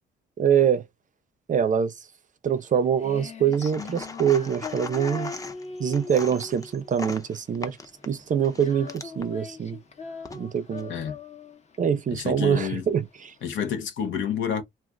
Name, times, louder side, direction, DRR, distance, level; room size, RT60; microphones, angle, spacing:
voice 1, 0.4-0.8 1.5-1.9 2.4-5.3 5.8-7.8 8.0-9.8 10.3-10.9 11.8-13.3, right 8 dB, 40° right, 0.5 m, -24 dB
Female singing, 2.5-13.5, left 5 dB, 35° left, 0.9 m, -40 dB
sound 1, 3.5-9.3 10.0-10.9, left 3 dB, 15° left, 0.5 m, -40 dB
voice 2, 12.1-12.9 13.4-14.6, left 8 dB, 75° left, 0.8 m, -29 dB
2.5 x 2.4 x 3.4 m
cardioid pair, 90°, 20 cm